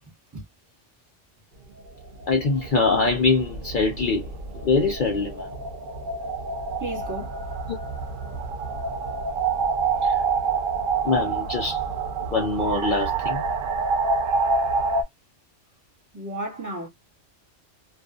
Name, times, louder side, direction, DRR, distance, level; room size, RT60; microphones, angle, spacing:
sound 1, 1.8-15.0, right 4 dB, 60° right, 0.6 m, -27 dB
voice 1, 2.3-4.3 4.5-5.5 7.7-7.8 10.0-10.2 11.0-11.8 12.3-13.4, left 4 dB, 60° left, 0.5 m, -23 dB
voice 2, 6.8-7.4 16.1-16.9, right 1 dB, 20° right, 0.6 m, -33 dB
2.5 x 2.3 x 2.2 m
omnidirectional pair, 1.3 m